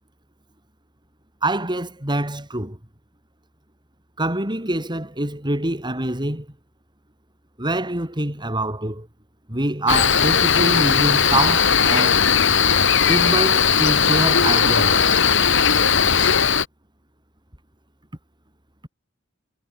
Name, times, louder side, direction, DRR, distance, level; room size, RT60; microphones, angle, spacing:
voice 1, 1.4-2.8 4.2-6.5 7.6-9.1 9.5-12.2 13.0-15.1, right 1 dB, 20° right, 5.5 m, -25 dB
Cricket, 9.9-16.7, left 7 dB, 65° left, 3.7 m, -17 dB
head